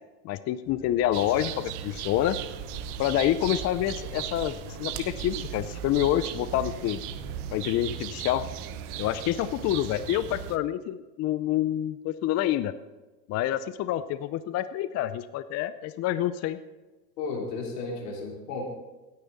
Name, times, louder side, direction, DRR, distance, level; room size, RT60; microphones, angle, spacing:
voice 1, 0.2-2.4 3.0-7.0 7.5-8.4 9.0-12.7 13.3-16.6, left 12 dB, 35° left, 13 dB, 0.5 m, -27 dB
sound 1, 0.6-10.4, left 2 dB, 60° left, 4.4 m, -46 dB
sound 2, 1.1-10.6, right 13 dB, 60° right, 0.9 m, -37 dB
sound 3, 1.9-7.6, right 7 dB, 35° right, 1.3 m, -44 dB
voice 2, 17.2-18.7, left 3 dB, 80° left, -1 dB, 3.6 m, -33 dB
17.0 x 9.6 x 4.1 m, 1.2 s
hypercardioid pair, 105°, 48 cm